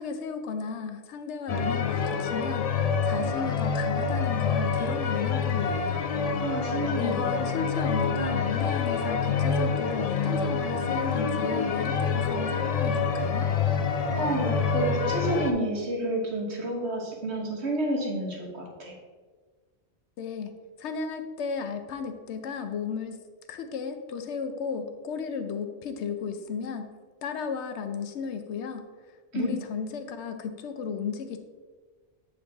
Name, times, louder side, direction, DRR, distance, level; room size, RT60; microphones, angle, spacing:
voice 1, 0.0-2.7 3.0-6.1 7.0-13.5 20.2-20.5 20.8-23.2 23.5-26.9 27.2-28.9 29.3-31.4, left 6 dB, 80° left, 7 dB, 0.9 m, -34 dB
sound 1, 1.5-15.5, left 5 dB, 60° left, 0.4 m, -27 dB
voice 2, 6.4-7.3 14.2-18.9 29.3-29.5, right 1 dB, 75° right, -1 dB, 1.5 m, -30 dB
7.7 x 3.8 x 3.5 m, 1.4 s
omnidirectional pair, 1.1 m